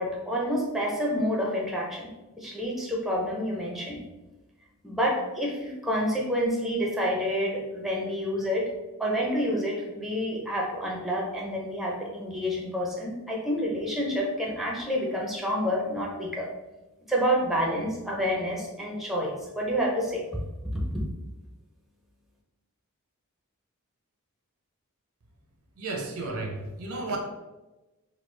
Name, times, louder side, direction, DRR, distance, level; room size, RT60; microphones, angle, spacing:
voice 1, 0.0-2.1 2.4-4.0 4.8-8.7 9.0-16.5 17.1-20.4 20.7-21.0, equal, ahead, -3 dB, 0.5 m, -28 dB
voice 2, 25.8-27.2, right 2 dB, 70° right, 2 dB, 0.6 m, -33 dB
3.0 x 2.3 x 3.2 m, 1.1 s
head